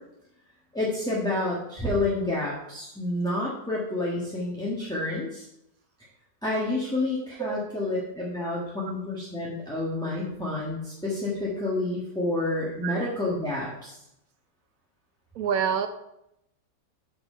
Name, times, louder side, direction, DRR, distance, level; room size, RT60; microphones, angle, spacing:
voice 1, 0.7-5.4 6.4-13.9, left 2 dB, 5° left, -6 dB, 1.5 m, -29 dB
voice 2, 15.4-15.9, right 7 dB, 70° right, 9 dB, 1.0 m, -27 dB
8.7 x 4.7 x 5.5 m, 0.83 s
omnidirectional pair, 1.7 m